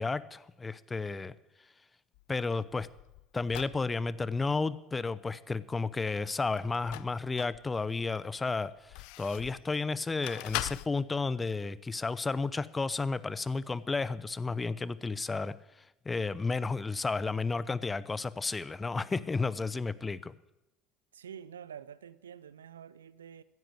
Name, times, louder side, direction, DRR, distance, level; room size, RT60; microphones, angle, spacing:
voice 1, 0.0-1.4 2.3-2.9 3.3-15.5 16.0-20.3, left 4 dB, 20° left, 18 dB, 0.7 m, -32 dB
sound 1, 2.1-3.8 6.5-7.6 8.2-9.7 10.2-10.9, left 20 dB, 65° left, 0.4 m, -40 dB
voice 2, 21.1-23.4, right 8 dB, 85° right, 18 dB, 0.5 m, -47 dB
15.5 x 10.5 x 7.7 m, 0.92 s
hypercardioid pair, 70°, 0 cm